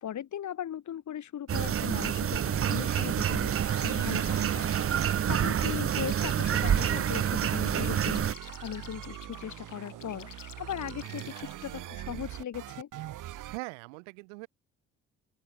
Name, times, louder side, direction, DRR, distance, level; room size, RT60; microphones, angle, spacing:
voice 1, 0.0-4.7 5.3-12.9, left 10 dB, 50° left, 4.6 m, -38 dB
sound 1, 1.5-8.3, right 9 dB, 35° right, 1.0 m, -28 dB
sound 2, 2.5-13.6, right 13 dB, 55° right, 2.9 m, -43 dB
sound 3, 2.8-11.5, left 8 dB, 90° left, 5.6 m, -50 dB
voice 2, 13.5-14.5, right 32 dB, 75° right, 4.4 m, -42 dB
open air
hypercardioid pair, 50°, 37 cm